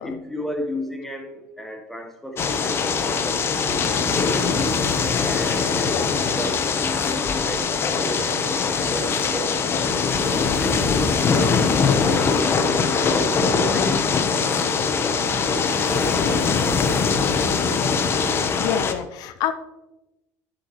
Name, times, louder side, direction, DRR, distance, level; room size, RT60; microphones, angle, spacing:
voice 1, 0.0-4.8 5.2-9.5 9.8-10.9 11.4-11.7 12.1-12.3 12.6-13.9 14.6-17.0, equal, 5° left, 3 dB, 1.1 m, -34 dB
sound 1, 2.4-18.9, left 5 dB, 35° left, 0.9 m, -22 dB
voice 2, 5.9-6.3 11.8-12.1 18.5-19.5, left 10 dB, 65° left, 10 dB, 0.5 m, -28 dB
11.0 x 7.0 x 3.0 m, 0.99 s
supercardioid pair, 110°, 7 cm